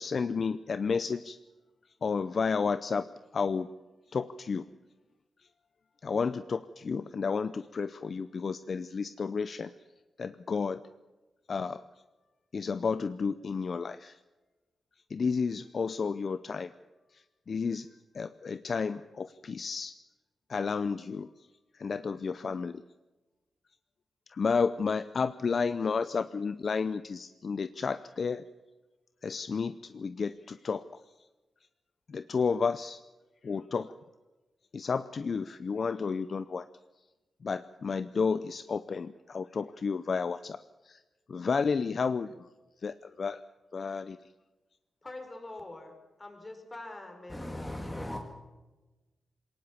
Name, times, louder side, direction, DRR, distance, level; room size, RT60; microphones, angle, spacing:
voice 1, 0.0-1.4 2.0-3.1 3.3-3.7 4.1-4.6 6.0-9.7 10.2-10.8 11.5-11.8 12.5-14.2 15.1-16.7 17.1-17.9 18.1-19.9 20.5-21.3 21.7-22.8 24.3-28.4 29.2-30.8 32.1-33.0 33.4-33.9 34.7-36.6 37.4-40.6 40.8-41.0 41.3-42.3 42.8-43.4 43.7-44.2, left 5 dB, 50° left, 13 dB, 0.6 m, -31 dB
voice 2, 45.0-47.9, left 2 dB, 25° left, 5 dB, 4.7 m, -45 dB
voice 3, 47.3-48.2, left 1 dB, 10° left, 3 dB, 1.9 m, -37 dB
22.0 x 18.5 x 7.2 m, 1.1 s
wide cardioid pair, 110°, 0 cm